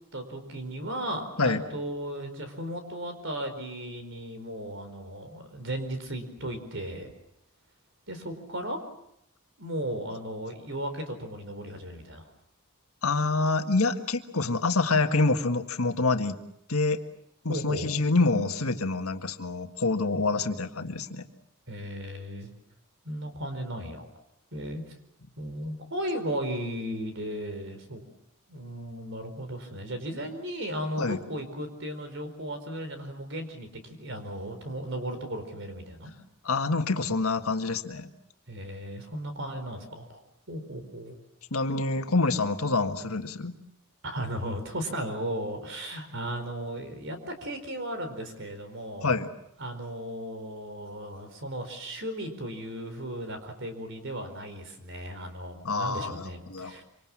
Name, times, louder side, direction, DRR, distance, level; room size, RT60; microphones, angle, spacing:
voice 1, 0.1-7.1 8.1-8.8 9.6-12.3 17.5-17.9 21.7-22.5 23.0-24.1 24.5-24.8 25.4-28.0 28.5-36.1 38.5-40.2 40.5-41.2 44.0-49.1 49.6-56.8, right 1 dB, 55° right, 8 dB, 4.7 m, -36 dB
voice 2, 13.0-16.4 16.7-17.0 17.4-21.3 31.0-31.2 36.4-38.1 41.5-43.5 49.0-49.3 55.6-56.8, left 3 dB, 80° left, 7 dB, 1.7 m, -26 dB
26.0 x 26.0 x 7.4 m, 0.77 s
head